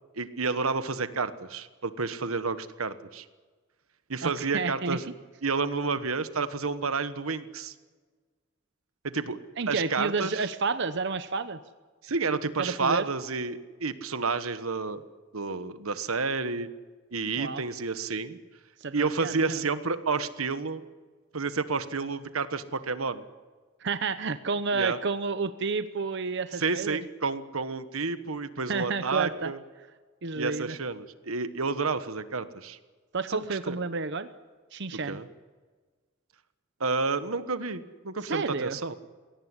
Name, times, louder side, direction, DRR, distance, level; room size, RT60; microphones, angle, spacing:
voice 1, 0.1-3.2 4.1-5.0 5.4-7.7 9.0-9.4 9.7-10.5 12.0-15.0 15.3-16.7 17.1-18.4 18.9-20.8 21.3-23.2 24.7-25.0 26.5-29.6 30.3-32.8 33.3-33.8 35.1-35.3 36.8-39.0, right 4 dB, 85° right, 12 dB, 1.3 m, -30 dB
voice 2, 4.2-5.0 9.6-11.6 12.6-13.0 17.4-17.6 18.8-19.6 23.8-27.0 28.7-29.5 30.2-30.8 33.1-34.3 34.7-35.2 38.3-38.8, right 4 dB, 55° right, 10 dB, 0.9 m, -30 dB
22.0 x 17.5 x 9.8 m, 1.4 s
head